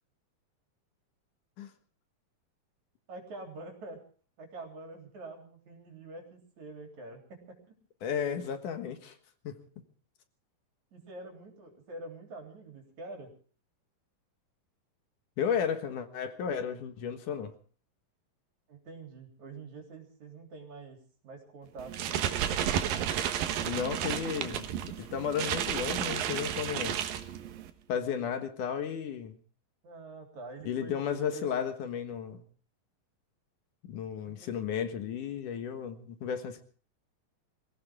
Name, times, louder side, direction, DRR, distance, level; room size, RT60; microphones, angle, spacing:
voice 1, 3.1-4.0 4.4-7.8 10.9-13.3 18.7-22.3 29.8-31.6 34.2-34.6, right 2 dB, 55° right, 4.9 m, -46 dB
voice 2, 8.0-9.2 9.4-9.6 15.4-17.5 23.6-24.7 25.0-27.0 27.9-29.4 30.7-32.4 33.9-36.6, left 7 dB, 70° left, 2.9 m, -33 dB
sound 1, 21.8-27.7, right 9 dB, 85° right, 3.1 m, -32 dB
24.5 x 16.5 x 3.6 m
omnidirectional pair, 3.9 m